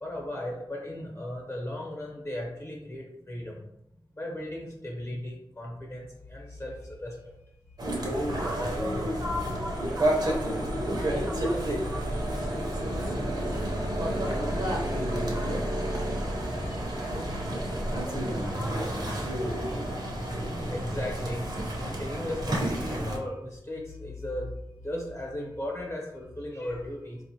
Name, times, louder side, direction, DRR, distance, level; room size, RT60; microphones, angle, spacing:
voice 1, 0.0-3.6 4.2-7.3 20.7-24.5 24.8-27.2, left 1 dB, 30° left, -1 dB, 1.0 m, -36 dB
sound 1, 7.8-23.2, right 1 dB, 50° right, 0.8 m, -30 dB
voice 2, 8.4-10.6 10.9-12.6 13.0-13.7 14.2-19.5, left 1 dB, 20° right, -2 dB, 0.7 m, -41 dB
4.1 x 2.4 x 2.9 m, 0.84 s
wide cardioid pair, 75°, 9 cm